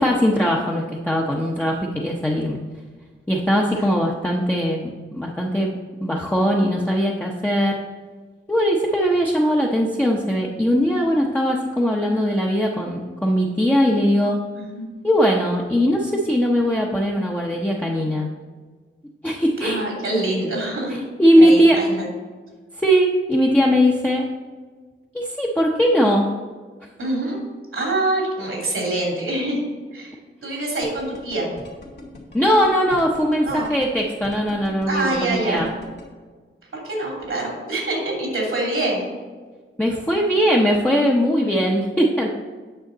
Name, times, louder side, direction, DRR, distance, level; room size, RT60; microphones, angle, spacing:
voice 1, 0.0-2.6 3.3-5.7 6.0-7.8 8.5-14.4 15.0-18.3 19.2-19.8 21.2-21.8 22.8-24.2 25.1-26.3 32.3-35.7 39.8-42.3, equal, 10° left, -3 dB, 0.8 m, -20 dB
voice 2, 3.7-4.0 14.5-14.9 19.6-21.0 21.3-22.1 27.0-27.4 27.7-29.6 29.9-31.6 33.4-33.7 34.9-35.7 36.7-39.1, right 2 dB, 85° right, -2 dB, 2.7 m, -25 dB
sound 1, 30.8-36.0, left 2 dB, 55° left, 2.0 m, -40 dB
9.0 x 6.4 x 3.9 m, 1.4 s
wide cardioid pair, 130°, 21 cm